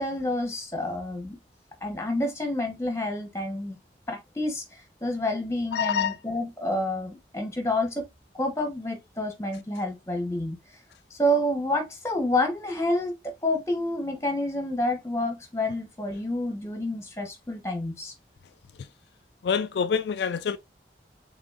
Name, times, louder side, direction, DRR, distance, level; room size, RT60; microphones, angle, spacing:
voice 1, 0.0-1.4 1.8-3.8 4.1-8.0 8.4-10.6 11.1-13.1 13.4-18.1, left 1 dB, 15° left, 1.1 m, -28 dB
voice 2, 5.7-6.2 19.4-20.6, left 6 dB, 70° left, 0.3 m, -26 dB
5.9 x 3.6 x 2.4 m
head